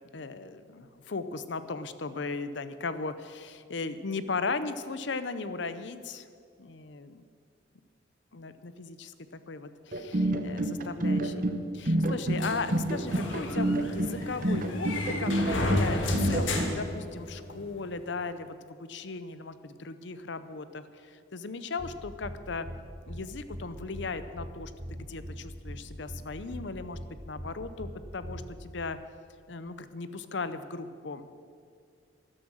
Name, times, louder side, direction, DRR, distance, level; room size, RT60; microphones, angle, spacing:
voice 1, 0.1-6.3 6.6-7.3 8.3-22.7 23.1-24.7 25.0-27.0 27.3-29.0 29.5-31.3, left 4 dB, 70° left, 12 dB, 0.7 m, -37 dB
sound 1, 9.9-16.7, right 1 dB, 45° right, 0.9 m, -28 dB
sound 2, 12.4-17.6, left 1 dB, 90° left, 1.7 m, -32 dB
sound 3, 21.8-21.9 22.2-22.3 22.6-22.8 23.1-23.2 23.5-23.6 23.9-24.1 24.4-24.5 24.8-25.3 25.6-25.8 26.1-26.2 26.5-26.6 26.9-27.1 27.4-27.5 27.8-27.9 28.2-28.4, equal, 65° right, 2.7 m, -40 dB
12.5 x 12.0 x 6.2 m, 2.3 s
head